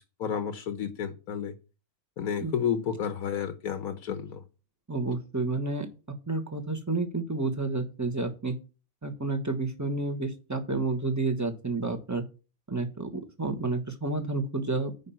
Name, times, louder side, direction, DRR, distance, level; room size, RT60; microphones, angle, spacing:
voice 1, 0.2-1.5 2.2-4.4, left 8 dB, 75° left, 1.4 m, -31 dB
voice 2, 4.9-5.9 6.3-8.5 9.0-12.2 12.7-14.9, right 3 dB, 10° right, 1.3 m, -30 dB
9.5 x 5.2 x 5.8 m
omnidirectional pair, 1.6 m